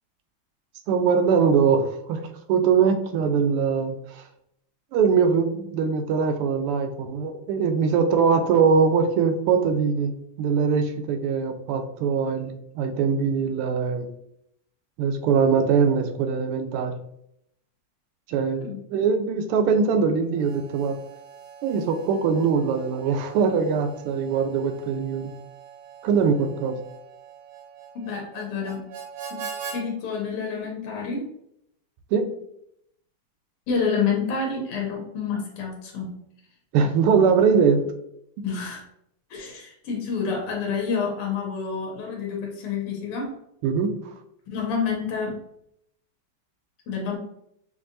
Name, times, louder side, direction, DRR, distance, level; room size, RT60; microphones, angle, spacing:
voice 1, 0.9-2.2 2.5-4.2 4.9-14.1 15.0-16.9 18.3-21.0 21.6-25.3 26.0-26.8 32.1-32.3 36.7-37.8 43.6-43.9, right 6 dB, 90° right, 7 dB, 1.5 m, -22 dB
Harmonica, 20.3-29.8, right 6 dB, 65° right, 1.2 m, -42 dB
voice 2, 28.0-28.8 29.3-29.4 29.7-31.2 33.7-36.1 38.4-38.8 39.3-43.4 44.5-45.4 46.9-47.2, left 5 dB, 90° left, 0 dB, 1.8 m, -28 dB
5.5 x 2.7 x 2.6 m, 0.76 s
omnidirectional pair, 2.4 m